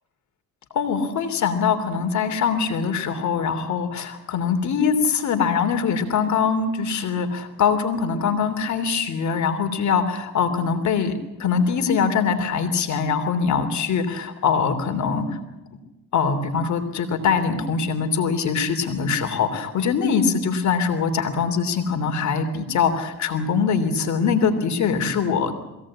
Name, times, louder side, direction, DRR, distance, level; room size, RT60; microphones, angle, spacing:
voice 1, 0.7-15.4 16.1-25.5, left 6 dB, 70° left, 8 dB, 3.1 m, -23 dB
22.0 x 17.5 x 8.6 m, 1.0 s
cardioid pair, 90°, 30 cm